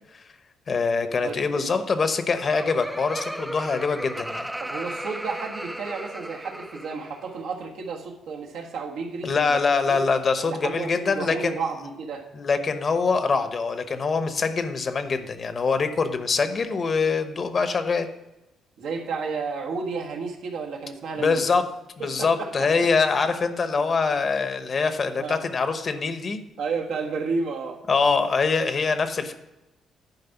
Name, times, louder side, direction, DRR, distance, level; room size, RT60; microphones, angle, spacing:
voice 1, 0.7-4.5 9.2-11.5 12.3-18.1 21.2-21.7 22.0-26.4 27.9-29.3, left 4 dB, 45° left, 9 dB, 0.9 m, -24 dB
voice 2, 1.2-1.7 4.6-10.1 10.4-12.3 18.8-21.4 22.0-22.9 25.1-25.5 26.6-27.8, right 4 dB, 85° right, 0 dB, 1.5 m, -32 dB
Laughter, 2.1-7.3, right 1 dB, 5° right, 0.3 m, -35 dB
10.5 x 4.7 x 5.8 m, 0.98 s
cardioid pair, 90°, 0 cm